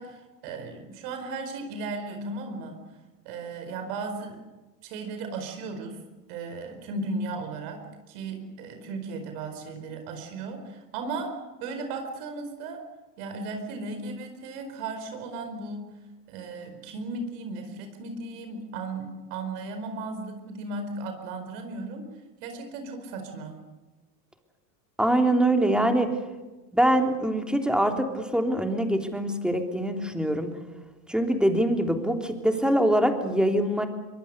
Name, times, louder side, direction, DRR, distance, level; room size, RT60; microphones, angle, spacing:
voice 1, 0.0-2.8 3.2-4.4 4.8-6.0 6.3-11.3 11.6-12.8 13.2-16.0 16.3-22.1 22.4-23.6, right 3 dB, 60° right, 6 dB, 4.8 m, -36 dB
voice 2, 25.0-26.1 26.7-30.5 31.1-33.9, right 1 dB, ahead, 4 dB, 3.3 m, -23 dB
23.5 x 23.0 x 6.8 m, 1.2 s
hypercardioid pair, 95°, 50 cm